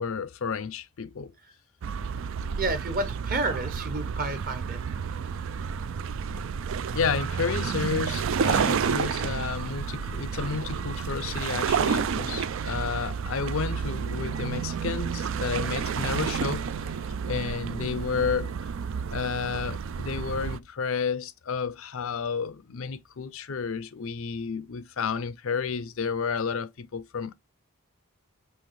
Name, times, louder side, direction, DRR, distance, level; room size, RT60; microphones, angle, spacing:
voice 1, 0.0-1.3 6.9-16.7 17.2-18.6 19.1-27.3, left 5 dB, 65° left, 0.5 m, -31 dB
sound 1, 1.8-20.6, right 6 dB, 60° right, 0.4 m, -30 dB
voice 2, 2.6-4.8, right 2 dB, 40° right, 1.2 m, -30 dB
5.6 x 3.0 x 3.1 m
head